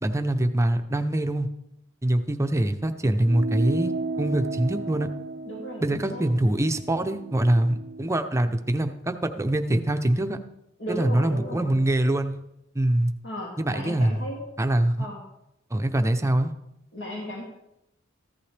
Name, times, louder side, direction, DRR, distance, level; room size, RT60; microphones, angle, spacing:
voice 1, 0.0-1.5 2.0-3.9 4.2-5.1 5.8-10.4 10.9-12.4 12.7-13.1 13.6-14.2 14.6-15.1 15.7-16.5, right 1 dB, 15° right, 7 dB, 0.7 m, -24 dB
sound 1, 3.3-8.1, right 3 dB, 50° right, 0.5 m, -34 dB
voice 2, 5.4-6.2 10.8-11.8 13.2-14.4 15.0-15.2 16.9-17.4, equal, 65° left, -4 dB, 2.5 m, -35 dB
14.5 x 11.5 x 3.4 m, 0.85 s
head